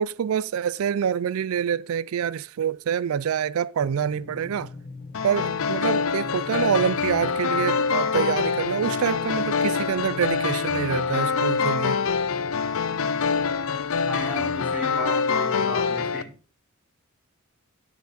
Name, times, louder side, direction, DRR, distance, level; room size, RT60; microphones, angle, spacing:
voice 1, 0.0-4.7 5.2-12.0, right 8 dB, 85° right, 0.4 m, -26 dB
sound 1, 3.8-15.1, left 3 dB, 35° left, 1.1 m, -43 dB
sound 2, 5.1-16.2, left 5 dB, 75° left, 0.6 m, -25 dB
voice 2, 14.1-16.3, left 1 dB, 10° right, 2.3 m, -34 dB
9.6 x 6.1 x 4.2 m
head